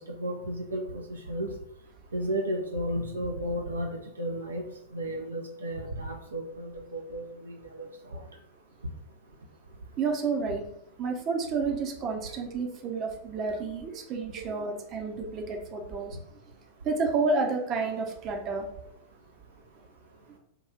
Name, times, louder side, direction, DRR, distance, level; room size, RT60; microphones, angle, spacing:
voice 1, 0.2-1.5 2.1-3.9 4.2-4.6 4.9-7.9 14.4-14.6, equal, 75° right, 1 dB, 0.6 m, -33 dB
voice 2, 10.0-10.6 11.0-16.2 16.8-18.7, right 4 dB, 35° right, 2 dB, 0.7 m, -30 dB
3.7 x 2.4 x 4.3 m, 0.73 s
figure-of-eight pair, 90°, 0 cm